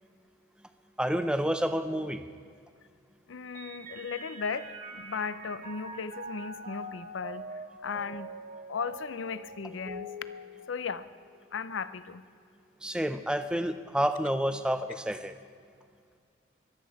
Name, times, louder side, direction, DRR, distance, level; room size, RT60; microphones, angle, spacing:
voice 1, 1.0-2.3 12.8-15.3, equal, 5° right, 9 dB, 0.5 m, -29 dB
voice 2, 3.3-7.5 7.8-8.3 8.7-10.1 10.7-11.1 11.5-12.2, left 5 dB, 65° left, 14 dB, 0.5 m, -36 dB
Mallet percussion, 3.5-11.3, right 1 dB, 40° right, 1.7 m, -44 dB
23.5 x 8.4 x 4.8 m, 2.2 s
head